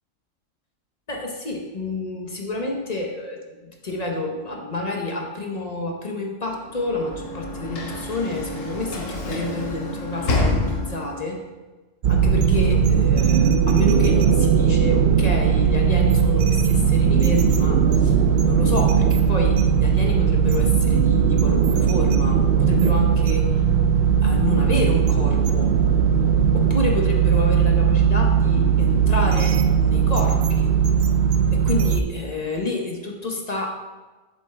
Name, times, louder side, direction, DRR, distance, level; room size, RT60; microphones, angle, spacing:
voice 1, 1.1-11.4 12.1-23.5 24.2-25.7 26.5-30.7 31.5-33.7, left 2 dB, 35° left, 1 dB, 0.9 m, -29 dB
Sliding door / Slam, 6.6-11.3, left 2 dB, 80° left, 1.4 m, -28 dB
sound 1, 12.0-32.0, right 7 dB, 65° right, 0.6 m, -18 dB
7.6 x 7.0 x 3.3 m, 1.2 s
omnidirectional pair, 1.3 m